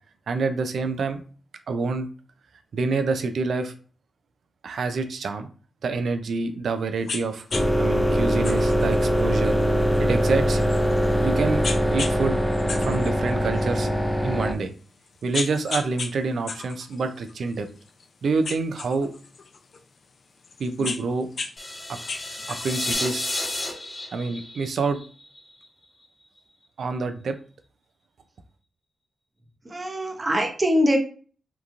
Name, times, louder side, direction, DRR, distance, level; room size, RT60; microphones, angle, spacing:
voice 1, 0.3-1.2 1.7-2.1 2.7-3.7 4.6-5.5 5.8-7.4 7.8-9.6 10.0-10.7 11.2-11.6 11.9-12.4 12.8-13.9 14.2-14.7 15.2-17.7 18.2-19.1 20.6-21.3 21.9-22.0 22.5-23.3 24.1-25.0 26.8-27.4, right 4 dB, 75° right, 8 dB, 0.4 m, -27 dB
sound 1, 7.1-7.2 7.5-7.7 8.4-11.1 11.6-12.2 12.5-13.9 14.4-14.5 15.1-16.1 16.5-18.0 18.4-19.8 20.4-21.5 21.8-22.9, left 4 dB, 60° left, 0.4 m, -34 dB
sound 2, 7.5-14.5, equal, 5° left, 0.5 m, -22 dB
sound 3, 21.6-25.6, left 1 dB, 20° left, 1.0 m, -32 dB
voice 2, 29.6-31.0, equal, 35° right, 4 dB, 0.7 m, -22 dB
2.9 x 2.4 x 2.4 m, 0.40 s
cardioid pair, 55°, 0 cm